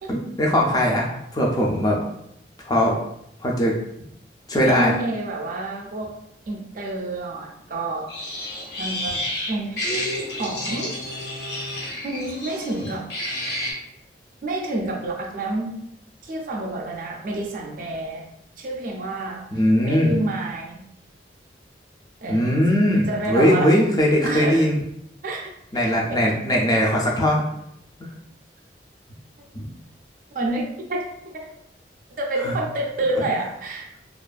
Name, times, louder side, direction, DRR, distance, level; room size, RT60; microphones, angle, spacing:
voice 1, 0.1-2.0 2.6-2.9 3.4-3.7 4.5-4.9 19.5-20.1 22.3-24.8 25.7-27.4 29.5-29.6 32.4-32.5 33.2-33.3, equal, 20° left, -2 dB, 0.3 m, -20 dB
voice 2, 4.6-6.1 6.5-8.1 8.8-9.2 9.5-9.8 10.4-10.9 12.0-13.1 14.4-15.8 16.2-18.2 18.6-19.4 19.8-20.8 22.2-22.5 23.1-23.7 24.2-24.7 25.2-25.5 26.1-26.2 30.3-31.0 31.3-31.5 32.2-33.9, right 2 dB, 50° right, 0 dB, 0.4 m, -28 dB
sound 1, 8.1-13.7, left 1 dB, 65° left, 0.6 m, -30 dB
2.4 x 2.4 x 2.2 m, 0.76 s
head